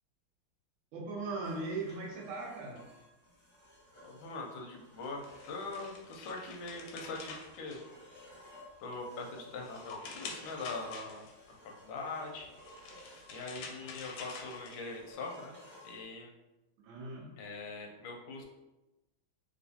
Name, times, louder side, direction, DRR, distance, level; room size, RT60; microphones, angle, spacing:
voice 1, 0.9-2.8 16.8-17.3, right 3 dB, 75° right, -3 dB, 1.4 m, -39 dB
sound 1, 1.4-16.0, left 1 dB, 25° left, 0.6 m, -56 dB
voice 2, 4.0-7.8 8.8-11.3 11.6-12.5 13.3-15.5 15.8-16.3 17.4-18.4, left 3 dB, 70° left, 1 dB, 1.3 m, -42 dB
sound 2, 5.0-8.4 8.8-11.5 12.4-15.1, left 4 dB, 85° left, 1.5 m, -48 dB
3.3 x 3.0 x 2.7 m, 1.0 s
omnidirectional pair, 2.4 m